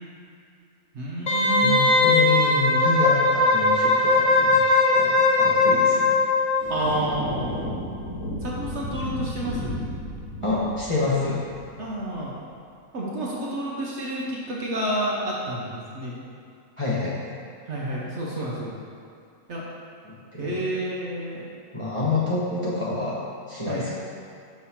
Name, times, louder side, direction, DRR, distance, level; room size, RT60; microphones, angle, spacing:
voice 1, 0.9-1.8 6.7-7.7 8.4-9.8 11.8-12.3 12.9-16.2 17.7-18.7 19.5-19.6 20.4-21.5 23.7-23.9, right 1 dB, 55° right, -4 dB, 1.0 m, -29 dB
Wind instrument woodwind instrument, 1.3-6.8 7.1-7.2, left 3 dB, 45° left, 0.6 m, -19 dB
voice 2, 1.6-6.1 10.4-11.4 16.8-17.3 20.0-20.6 21.7-23.2 23.5-23.9, left 3 dB, 25° left, -9 dB, 0.9 m, -27 dB
sound 1, 6.6-12.2, left 1 dB, 70° left, 1.4 m, -33 dB
5.8 x 3.1 x 5.6 m, 2.5 s
omnidirectional pair, 1.5 m